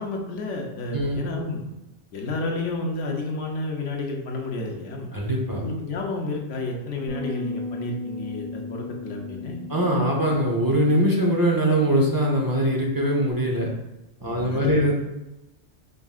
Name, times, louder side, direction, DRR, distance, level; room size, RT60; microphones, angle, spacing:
voice 1, 0.0-1.6 2.1-5.1 5.6-9.6 14.2-14.8, left 2 dB, 85° left, 1 dB, 1.1 m, -31 dB
voice 2, 5.1-5.6 9.7-13.7 14.2-14.9, right 1 dB, 25° right, -2 dB, 0.5 m, -22 dB
Bass guitar, 7.1-13.3, left 2 dB, 30° left, 1.0 m, -37 dB
5.2 x 3.5 x 2.4 m, 0.95 s
omnidirectional pair, 1.2 m